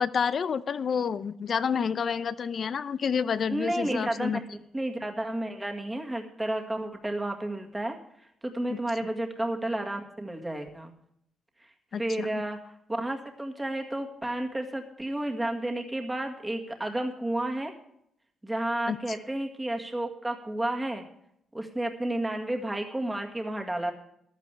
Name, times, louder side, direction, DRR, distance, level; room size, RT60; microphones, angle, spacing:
voice 1, 0.0-4.4 8.7-8.8 11.9-12.3 18.9-19.0, left 6 dB, 50° left, 15 dB, 0.6 m, -29 dB
voice 2, 3.5-4.3 4.7-8.0 8.4-10.9 12.0-12.6 12.9-17.7 18.4-21.0 21.5-23.9, right 1 dB, 10° right, 2 dB, 1.9 m, -31 dB
14.5 x 12.0 x 3.4 m, 0.73 s
cardioid pair, 105°, 0 cm